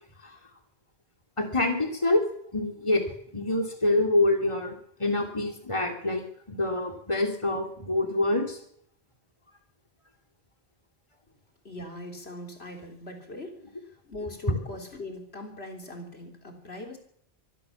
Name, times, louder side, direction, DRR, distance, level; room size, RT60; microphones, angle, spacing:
voice 1, 1.4-2.2 2.5-8.6, left 2 dB, 30° left, 4 dB, 3.1 m, -26 dB
voice 2, 11.6-13.6 14.1-17.0, left 1 dB, 75° left, 4 dB, 3.9 m, -40 dB
24.0 x 15.5 x 7.3 m, 0.66 s
omnidirectional pair, 1.1 m